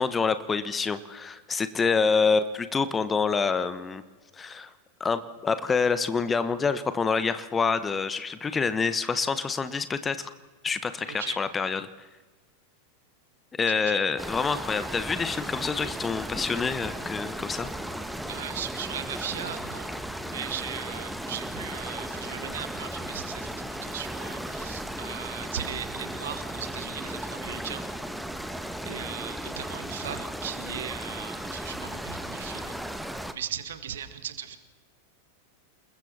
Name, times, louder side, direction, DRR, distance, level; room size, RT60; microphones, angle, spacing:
voice 1, 0.0-4.0 4.4-4.7 5.0-10.3 10.6-11.9 13.6-17.7, left 5 dB, 15° left, 13 dB, 1.1 m, -27 dB
voice 2, 11.1-11.4 13.7-14.0 18.3-19.9 20.2-27.8 28.9-32.7 33.3-34.6, right 9 dB, 60° right, 11 dB, 1.8 m, -38 dB
sound 1, 14.2-33.3, right 1 dB, ahead, 1.4 m, -36 dB
29.0 x 21.0 x 4.4 m, 1.3 s
figure-of-eight pair, 90°, 0 cm